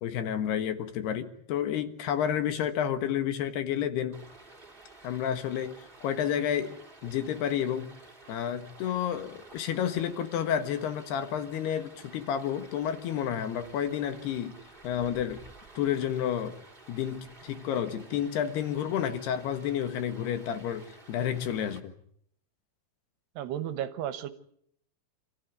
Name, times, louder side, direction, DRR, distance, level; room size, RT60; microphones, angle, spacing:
voice 1, 0.0-4.2 5.0-5.8 6.0-6.7 7.0-7.9 8.3-14.6 14.8-15.4 15.8-16.6 16.9-21.9, left 9 dB, 70° left, 9 dB, 3.4 m, -30 dB
Stream, 4.1-21.8, right 2 dB, 15° right, 3.2 m, -52 dB
voice 2, 23.4-24.3, right 11 dB, 75° right, 11 dB, 3.1 m, -33 dB
27.5 x 15.0 x 9.4 m, 0.70 s
omnidirectional pair, 5.1 m